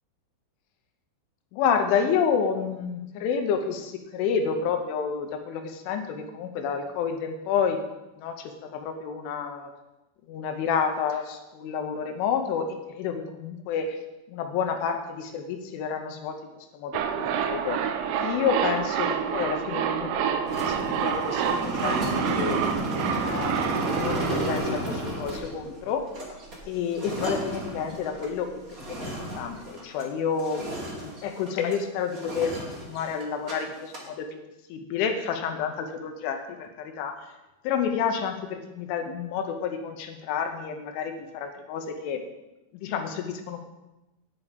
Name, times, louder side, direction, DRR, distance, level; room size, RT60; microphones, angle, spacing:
voice 1, 1.5-7.8 8.2-9.7 10.3-14.0 14.3-16.4 16.7-17.8 18.2-26.0 26.7-28.6 28.9-30.6 30.9-34.4 34.7-37.1 37.6-42.2 42.7-43.6, left 6 dB, 80° left, 5 dB, 3.2 m, -29 dB
sound 1, 16.9-25.7 26.0-26.1, right 8 dB, 80° right, 2.7 m, -28 dB
sound 2, 20.4-30.1 30.4-31.8 32.1-33.5 33.8-34.1, right 1 dB, 55° right, 0.9 m, -33 dB
9.6 x 9.6 x 5.2 m, 0.97 s
omnidirectional pair, 5.8 m